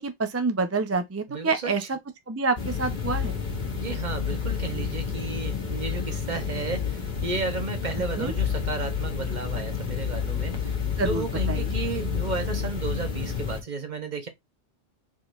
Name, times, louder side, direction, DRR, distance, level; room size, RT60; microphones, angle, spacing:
voice 1, 0.0-1.8 2.3-3.4 8.2-8.3 11.0-11.2 11.5-11.7, right 4 dB, 20° right, 0.4 m, -27 dB
voice 2, 1.3-1.9 3.7-10.8 11.0-14.3, right 4 dB, 45° right, 1.0 m, -33 dB
sound 1, 2.6-13.6, left 7 dB, 45° left, 1.3 m, -30 dB
4.9 x 3.8 x 2.4 m
omnidirectional pair, 1.1 m